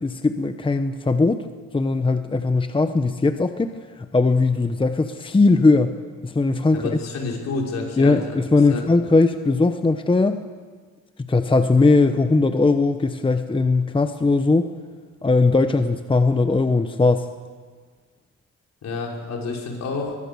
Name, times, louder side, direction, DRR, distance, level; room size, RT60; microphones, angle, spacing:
voice 1, 0.0-1.4 1.7-5.9 6.2-7.0 8.0-10.4 11.2-14.7 15.2-17.3, left 3 dB, 15° left, 9 dB, 1.0 m, -19 dB
voice 2, 6.7-8.4 8.7-8.8 18.8-20.2, left 3 dB, 60° left, -1 dB, 5.6 m, -29 dB
23.0 x 18.5 x 7.0 m, 1.5 s
cardioid pair, 90°, 30 cm